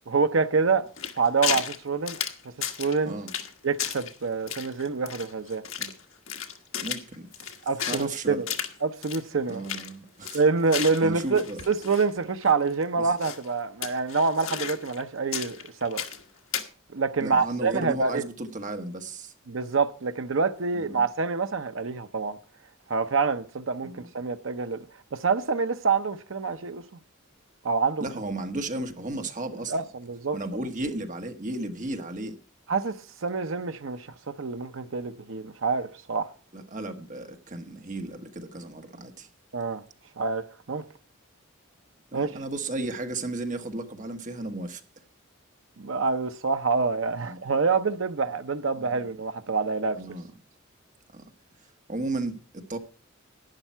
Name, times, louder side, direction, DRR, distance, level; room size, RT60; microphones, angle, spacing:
voice 1, 0.1-0.9 1.2-2.2 2.8-3.1 3.6-5.6 7.7-8.5 8.8-9.6 10.3-16.0 16.9-18.2 19.5-22.4 22.9-24.8 25.1-26.8 27.6-28.1 29.7-30.4 32.7-33.0 33.2-36.3 39.5-39.8 40.2-40.8 42.1-42.3 45.8-50.0, right 4 dB, 65° right, 0.7 m, -26 dB
sound 1, 1.0-1.8 2.1-3.0 3.3-3.5 3.8-4.1 4.5-6.0 6.3-8.1 8.5-8.7 9.0-9.2 9.5-9.9 10.2-12.1 12.4-12.5 13.2-13.5 13.8-15.0 15.3-16.2 16.5-16.7, left 9 dB, 75° left, 1.5 m, -33 dB
voice 2, 6.8-7.3 7.9-8.4 9.5-10.4 11.0-11.6 17.2-19.3 20.7-21.0 23.8-24.1 28.0-29.8 30.3-32.4 36.5-39.3 42.1-44.8 47.2-47.4 48.8-48.9 50.0-50.3 51.1-51.2 51.9-52.8, right 2 dB, 40° right, 1.4 m, -34 dB
11.5 x 9.9 x 4.5 m
head